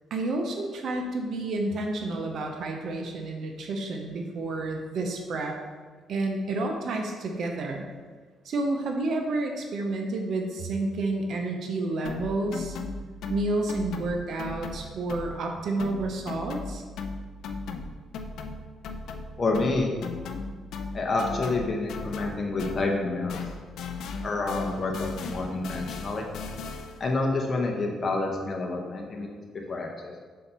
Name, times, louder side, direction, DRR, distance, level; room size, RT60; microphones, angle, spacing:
voice 1, 0.1-5.6 6.1-7.9 8.4-12.8 13.3-16.8, right 2 dB, 65° right, 3 dB, 0.8 m, -30 dB
sound 1, 12.0-15.5 15.8-23.0 23.3-27.1, left 4 dB, 75° left, 0.5 m, -37 dB
voice 2, 19.4-19.9 20.9-23.4 24.2-26.3 27.0-30.2, left 3 dB, 40° left, 0 dB, 0.9 m, -28 dB
5.6 x 4.2 x 5.4 m, 1.5 s
cardioid pair, 90°, 0 cm